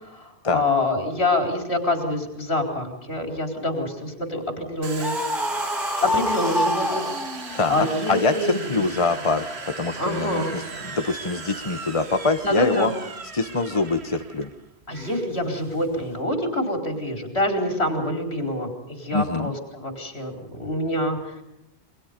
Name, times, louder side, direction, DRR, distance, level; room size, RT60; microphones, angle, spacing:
voice 1, 0.0-5.2 6.0-8.8 10.0-10.5 12.4-12.9 14.9-21.4, left 1 dB, 75° left, 4 dB, 4.7 m, -26 dB
Domestic sounds home sounds, 4.8-16.2, right 4 dB, 75° right, 1.8 m, -37 dB
Screaming, 5.0-7.7, equal, ahead, 2.1 m, -26 dB
voice 2, 7.5-9.4 9.8-12.9 13.3-14.5 19.1-19.5, left 3 dB, 30° left, 8 dB, 1.2 m, -24 dB
29.0 x 23.5 x 5.3 m, 0.82 s
omnidirectional pair, 1.1 m